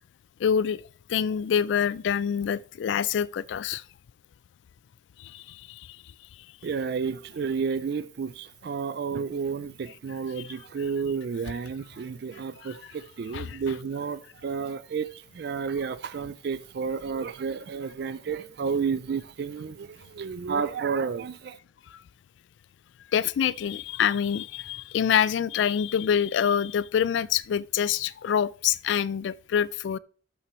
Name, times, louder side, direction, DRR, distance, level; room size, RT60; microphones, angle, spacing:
voice 1, 0.4-0.8 1.1-3.8 5.2-5.8 12.6-12.8 13.3-13.6 23.1-30.0, left 8 dB, 70° left, 0.3 m, -26 dB
voice 2, 6.6-21.6, right 5 dB, 55° right, 0.3 m, -31 dB
12.5 x 6.0 x 3.1 m
head